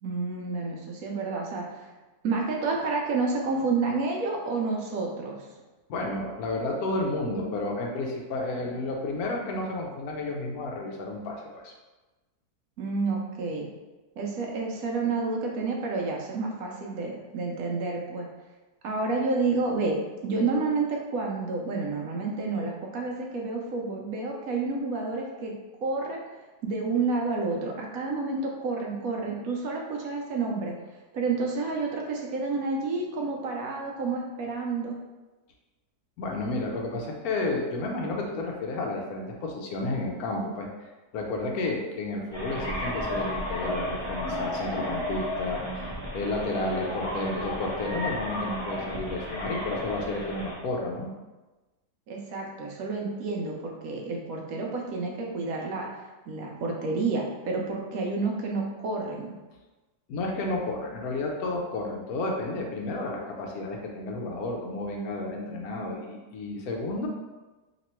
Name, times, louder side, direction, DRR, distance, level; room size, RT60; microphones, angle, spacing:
voice 1, 0.0-1.9 2.2-5.5 12.8-13.7 14.2-18.3 18.8-20.0 20.2-25.5 25.8-26.2 26.6-30.7 31.1-34.9 52.1-59.3, right 3 dB, 70° right, 0 dB, 1.0 m, -29 dB
voice 2, 5.9-11.7 36.2-51.1 60.1-67.1, left 2 dB, 70° left, 0 dB, 1.1 m, -31 dB
sound 1, 42.3-50.6, left 1 dB, 30° left, 0.6 m, -33 dB
3.0 x 2.9 x 4.2 m, 1.2 s
omnidirectional pair, 1.7 m